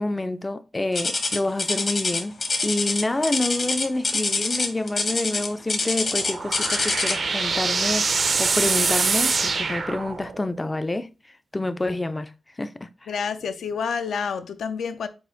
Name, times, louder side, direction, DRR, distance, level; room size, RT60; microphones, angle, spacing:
voice 1, 0.0-2.4 2.6-11.1 11.5-12.3 12.6-13.1, left 2 dB, 20° left, 0.3 m, -28 dB
sound 1, 0.9-7.3 8.3-8.5 9.1-9.2 9.9-10.0, left 3 dB, 50° left, 0.9 m, -25 dB
sound 2, 6.0-10.5, right 4 dB, 50° right, 0.4 m, -24 dB
voice 2, 13.1-15.1, left 6 dB, 85° left, 0.4 m, -28 dB
4.2 x 2.4 x 4.6 m
wide cardioid pair, 125°, 0 cm